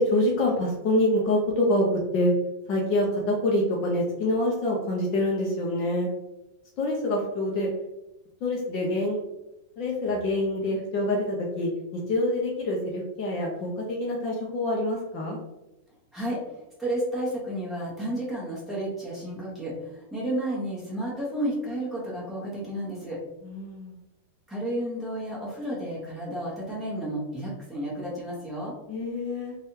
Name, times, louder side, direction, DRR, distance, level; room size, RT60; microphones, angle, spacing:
voice 1, 0.0-2.3 2.7-6.1 6.8-7.7 8.4-9.2 9.8-15.4 23.4-23.9 28.9-29.6, left 1 dB, 35° left, -1 dB, 0.5 m, -26 dB
voice 2, 16.8-23.2 24.5-28.7, right 1 dB, 5° right, -7 dB, 1.0 m, -32 dB
3.4 x 2.3 x 2.8 m, 0.94 s
supercardioid pair, 165°, 0 cm